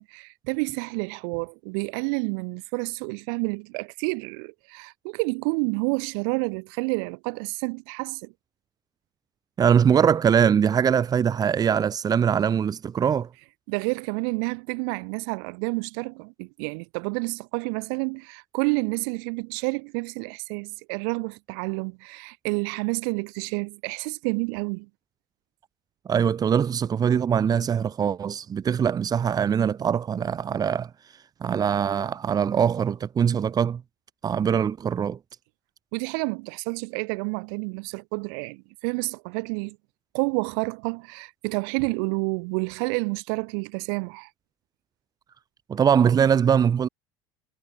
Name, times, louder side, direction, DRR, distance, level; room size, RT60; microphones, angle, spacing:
voice 1, 0.0-8.3 13.7-24.9 35.9-39.8 40.1-44.3, right 38 dB, 75° right, 4.5 m, -29 dB
voice 2, 9.6-13.3 26.1-30.9 31.4-33.8 34.2-35.2 45.7-46.9, right 7 dB, 35° right, 2.8 m, -22 dB
supercardioid pair, 100°, 11 cm